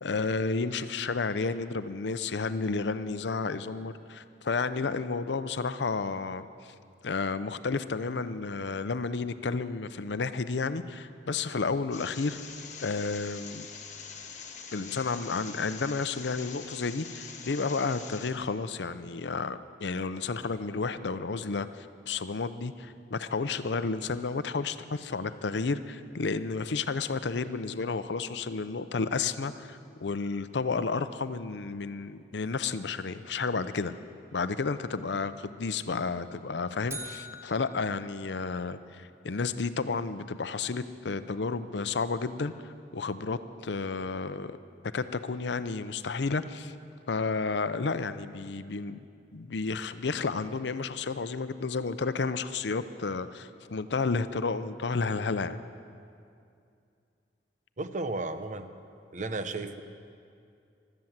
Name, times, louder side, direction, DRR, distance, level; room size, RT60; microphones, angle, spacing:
voice 1, 0.0-6.7 7.0-12.4 12.8-13.7 14.7-33.9 34.3-44.5 44.9-46.7 47.1-49.1 49.3-55.6, left 4 dB, 75° left, 12 dB, 0.6 m, -31 dB
sound 1, 11.9-18.3, left 6 dB, 45° left, 1.4 m, -44 dB
sound 2, 36.9-39.0, right 1 dB, 15° right, 1.0 m, -44 dB
voice 2, 57.8-58.7 59.1-59.8, right 2 dB, 45° right, 9 dB, 0.8 m, -34 dB
15.5 x 12.5 x 7.3 m, 2.4 s
head